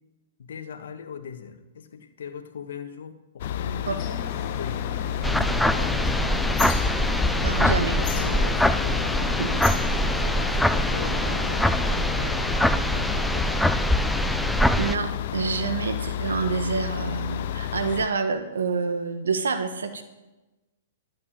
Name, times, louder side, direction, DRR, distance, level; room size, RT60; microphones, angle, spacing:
voice 1, 0.4-6.0 7.5-13.8, left 7 dB, 75° left, 6 dB, 1.4 m, -40 dB
sound 1, 3.4-18.1, left 10 dB, 55° left, 0.6 m, -31 dB
sound 2, 4.0-12.1, left 6 dB, 35° left, 2.0 m, -36 dB
sound 3, 5.2-14.9, equal, ahead, 0.4 m, -24 dB
voice 2, 7.4-8.0 9.4-9.5 14.8-20.0, right 5 dB, 90° right, 9 dB, 1.2 m, -27 dB
12.5 x 9.5 x 7.4 m, 1.1 s
hypercardioid pair, 135°, 0 cm